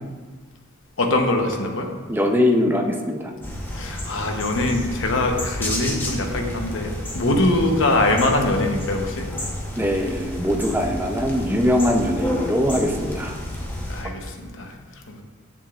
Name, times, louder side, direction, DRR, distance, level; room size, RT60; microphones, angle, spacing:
voice 1, 1.0-1.9 3.7-9.3 13.9-14.7 15.1-15.2, left 2 dB, 70° left, 3 dB, 0.9 m, -23 dB
voice 2, 2.1-3.3 9.8-13.4, left 1 dB, 10° right, 2 dB, 0.6 m, -21 dB
sound 1, 3.4-14.0, left 1 dB, 10° left, 0.9 m, -31 dB
7.8 x 7.1 x 2.4 m, 1.4 s
head